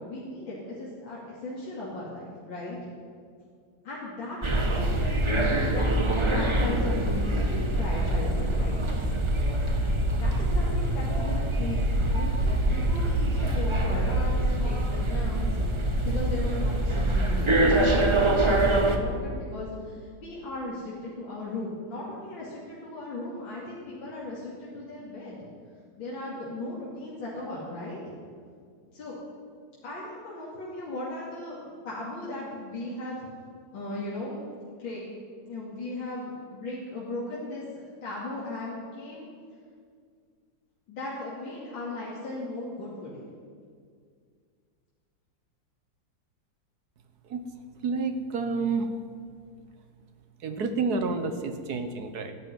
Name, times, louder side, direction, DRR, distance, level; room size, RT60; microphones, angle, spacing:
voice 1, 0.0-2.8 3.8-5.9 6.3-9.2 10.2-11.8 12.1-25.5 26.0-28.1 28.9-29.2 29.8-33.2 33.7-34.4 34.8-35.0 35.4-39.3 40.9-43.2, left 2 dB, 80° left, -7 dB, 3.4 m, -37 dB
sound 1, 4.4-19.0, right 1 dB, 20° right, 0.9 m, -25 dB
voice 2, 47.8-48.9 50.4-52.3, right 4 dB, 60° right, 9 dB, 1.5 m, -29 dB
13.5 x 10.5 x 9.5 m, 2.1 s
omnidirectional pair, 2.1 m